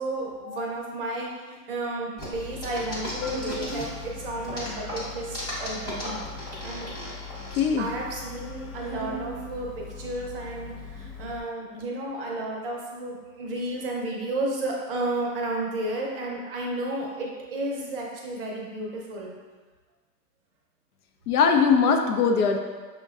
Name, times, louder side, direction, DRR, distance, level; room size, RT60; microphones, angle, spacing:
voice 1, 0.0-6.3 6.6-6.9 7.8-19.4, right 2 dB, 35° right, -2 dB, 0.6 m, -32 dB
sound 1, 2.2-4.1 4.4-7.6, equal, 10° left, 0.9 m, -36 dB
Organ, 2.3-11.4, left 2 dB, 50° left, 0.9 m, -39 dB
voice 2, 7.6-7.9 21.3-22.6, left 5 dB, 65° left, 4 dB, 0.6 m, -21 dB
6.4 x 2.2 x 2.3 m, 1.4 s
hypercardioid pair, 150°, 49 cm